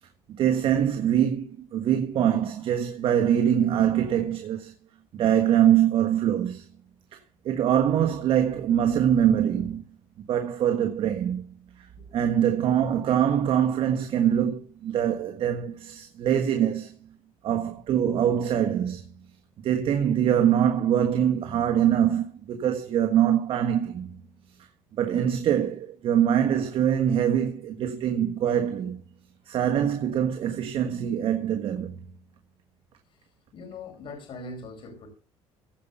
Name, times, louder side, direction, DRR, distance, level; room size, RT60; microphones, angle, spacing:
voice 1, 0.4-4.7 5.1-6.7 7.1-7.2 7.4-9.8 10.3-11.4 11.8-11.9 12.1-17.0 17.4-19.0 19.6-24.1 24.9-29.0 29.5-31.9, right 9 dB, 60° right, 1.4 m, -23 dB
voice 2, 33.5-35.1, left 3 dB, 55° left, 4.4 m, -41 dB
16.0 x 5.5 x 7.0 m
cardioid pair, 110°, 11 cm